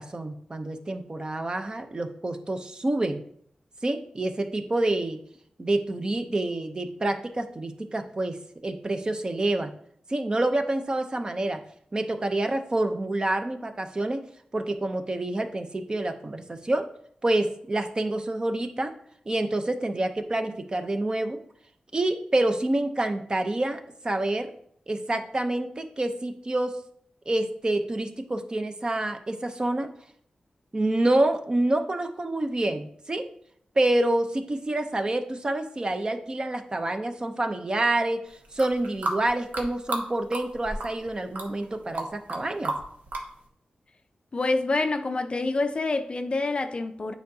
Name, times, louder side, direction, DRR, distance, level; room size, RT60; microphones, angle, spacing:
voice 1, 0.0-3.2 3.8-5.2 5.6-8.4 8.6-9.7 10.1-11.6 11.9-14.2 14.5-16.8 17.2-18.9 19.3-21.4 21.9-24.5 24.9-26.7 27.3-29.9 30.7-33.2 33.8-38.2 38.5-42.7, right 2 dB, 30° right, 0.6 m, -27 dB
sound 1, 38.4-40.1 40.3-41.1 41.4-42.4 42.6-43.3, right 2 dB, 90° right, 1.1 m, -31 dB
voice 2, 44.3-47.1, left 3 dB, 40° left, 0.4 m, -27 dB
9.1 x 4.6 x 2.7 m
wide cardioid pair, 120°, 3 cm